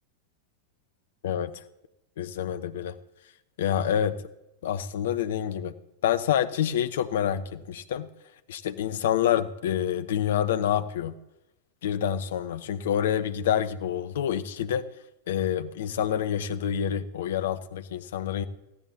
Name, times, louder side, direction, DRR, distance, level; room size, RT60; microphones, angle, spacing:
voice 1, 1.2-1.6 2.2-2.9 3.6-4.2 4.6-5.7 6.0-8.1 8.5-11.2 11.8-14.8 15.3-18.5, left 9 dB, 60° left, 12 dB, 0.8 m, -27 dB
20.5 x 14.5 x 2.8 m, 0.92 s
figure-of-eight pair, 90°, 0 cm